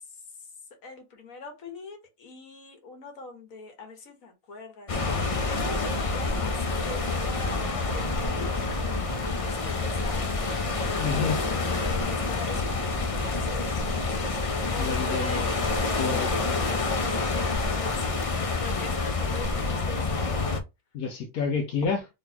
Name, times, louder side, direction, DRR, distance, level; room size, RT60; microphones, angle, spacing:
voice 1, 0.8-8.6 9.4-10.2 11.1-20.6, left 3 dB, 65° left, 1.6 m, -43 dB
sound 1, 4.9-20.6, left 3 dB, 50° left, 0.4 m, -28 dB
voice 2, 11.0-11.4 14.8-15.5 16.0-16.3 20.9-22.1, left 5 dB, 90° left, 1.3 m, -29 dB
3.8 x 3.5 x 2.8 m
omnidirectional pair, 1.5 m